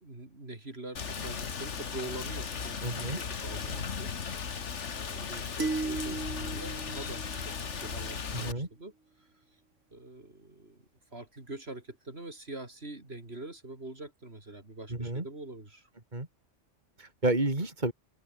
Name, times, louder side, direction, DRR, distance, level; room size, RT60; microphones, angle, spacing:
voice 1, 0.0-4.1 4.9-7.5 7.8-8.9 9.2-9.3 9.9-15.9, right 2 dB, 55° right, 4.4 m, -44 dB
Rain, 1.0-8.5, left 6 dB, 70° left, 1.8 m, -37 dB
voice 2, 2.8-3.2 8.3-8.7 14.9-15.3 16.1-16.3 17.0-17.9, right 2 dB, 40° right, 4.0 m, -30 dB
sound 1, 5.6-8.0, right 3 dB, 90° right, 3.3 m, -36 dB
omnidirectional pair, 1.2 m